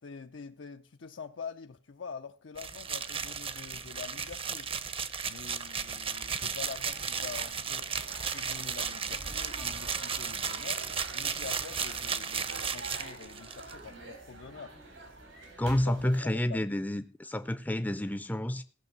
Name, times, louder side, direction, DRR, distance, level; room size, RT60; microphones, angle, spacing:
voice 1, 0.0-4.7 5.3-7.9 8.3-10.9 11.1-14.8 15.8-16.1 16.5-16.8, left 5 dB, 80° left, 0.6 m, -45 dB
sound 1, 2.6-13.7, right 6 dB, 30° right, 0.7 m, -35 dB
sound 2, 5.5-16.3, right 2 dB, 85° right, 3.8 m, -48 dB
voice 2, 15.6-18.6, left 1 dB, 10° left, 0.5 m, -30 dB
16.0 x 6.0 x 7.3 m
head